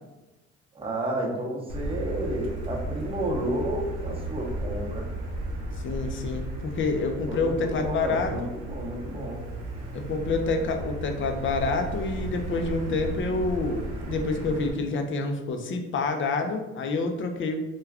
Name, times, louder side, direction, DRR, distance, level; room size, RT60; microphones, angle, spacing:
voice 1, 0.7-5.1 7.3-9.4, right 1 dB, 20° right, -2 dB, 0.8 m, -31 dB
Motor vehicle (road), 1.7-14.7, right 2 dB, 70° right, 0.7 m, -34 dB
voice 2, 5.8-8.3 9.9-17.6, left 3 dB, 40° left, 5 dB, 0.5 m, -28 dB
2.3 x 2.2 x 3.4 m, 1.1 s
supercardioid pair, 80°, 30 cm